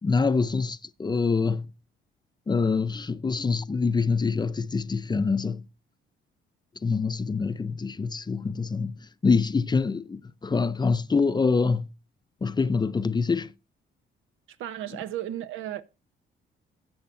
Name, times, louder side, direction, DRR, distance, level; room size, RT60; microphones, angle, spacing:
voice 1, 0.0-1.7 2.5-5.7 6.8-11.9 12.4-13.5, left 4 dB, 20° left, 0.5 m, -25 dB
voice 2, 14.6-15.8, right 12 dB, 85° right, 0.8 m, -34 dB
15.0 x 7.9 x 2.5 m
cardioid pair, 90°, 20 cm